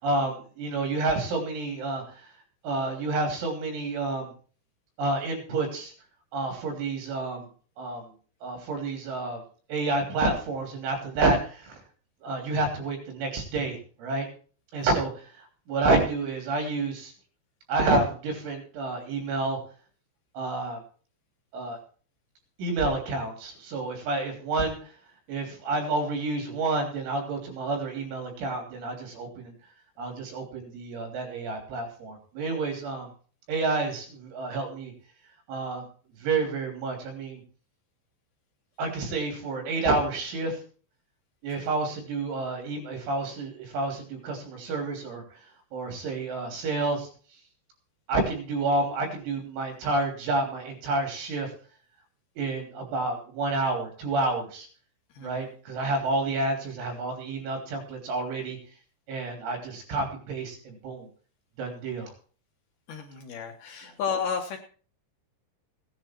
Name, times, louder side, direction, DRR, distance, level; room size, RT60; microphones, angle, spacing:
voice 1, 0.0-2.3 2.6-4.3 5.0-5.9 6.3-7.5 7.8-8.1 8.4-9.4 9.7-11.8 12.2-14.3 14.7-15.3 15.7-17.1 17.7-19.6 20.4-20.8 21.5-21.8 22.6-24.8 25.3-29.5 30.0-33.1 33.5-34.9 35.5-35.8 36.2-37.4 38.8-40.6 41.4-45.2 45.7-47.1 48.1-51.5 52.4-54.7 55.2-58.6 59.1-61.1 61.6-62.1, right 2 dB, 75° right, 2 dB, 5.8 m, -29 dB
voice 2, 62.9-64.6, left 6 dB, 65° left, 3 dB, 2.7 m, -32 dB
17.0 x 10.5 x 4.5 m, 0.42 s
omnidirectional pair, 5.6 m